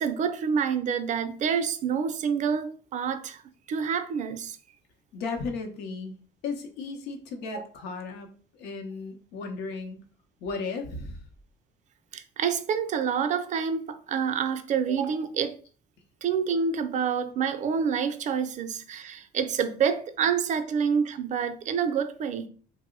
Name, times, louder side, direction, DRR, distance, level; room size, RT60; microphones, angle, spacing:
voice 1, 0.0-3.4 3.7-4.6 7.5-7.6 12.1-15.6 16.2-22.5, right 6 dB, 45° right, 0.4 m, -27 dB
voice 2, 5.1-6.2 6.4-10.0 10.4-11.2, left 4 dB, 85° left, 0.7 m, -35 dB
2.9 x 2.0 x 3.6 m
cardioid pair, 110°, 17 cm